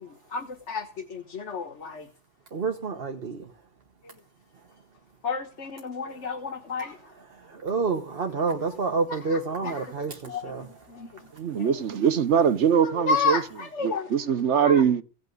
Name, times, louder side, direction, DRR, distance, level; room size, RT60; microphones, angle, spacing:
voice 1, 0.0-2.1 4.0-4.1 5.2-7.0 9.1-9.9 10.3-11.2 11.6-11.8 12.8-14.1 14.5-14.8, left 4 dB, 75° left, 1.7 m, -31 dB
voice 2, 2.5-3.4 7.6-10.6, right 4 dB, 55° right, 1.4 m, -28 dB
voice 3, 11.4-13.4 13.8-15.0, right 8 dB, 75° right, 1.3 m, -22 dB
17.0 x 5.9 x 9.3 m
omnidirectional pair, 1.2 m